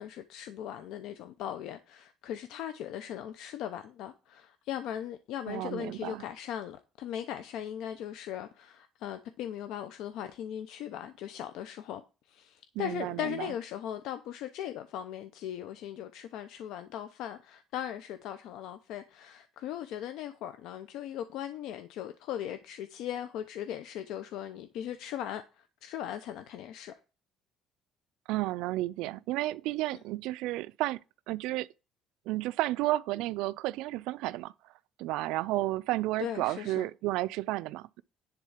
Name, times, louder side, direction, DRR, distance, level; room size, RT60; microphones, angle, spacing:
voice 1, 0.0-12.0 12.3-26.9 29.9-30.0 36.2-36.9, left 10 dB, 70° left, 0.7 m, -39 dB
voice 2, 5.5-6.2 12.8-13.5 28.3-31.0 31.3-31.7 32.3-34.5 35.0-38.0, right 17 dB, 80° right, 0.4 m, -32 dB
10.5 x 3.7 x 7.2 m
cardioid pair, 160°, 0 cm